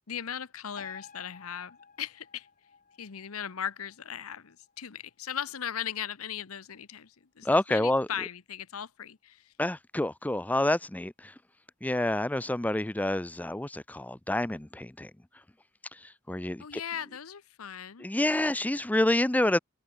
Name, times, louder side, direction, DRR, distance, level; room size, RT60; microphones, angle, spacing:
voice 1, 0.1-2.5 3.0-9.5 16.6-18.1, left 9 dB, 90° left, 0.8 m, -38 dB
sound 1, 0.8-7.7 8.1-8.2, left 5 dB, 40° left, 5.9 m, -55 dB
voice 2, 7.4-8.1 9.6-11.3 11.8-15.1 15.9-16.8 18.0-19.6, left 1 dB, 5° left, 0.5 m, -28 dB
head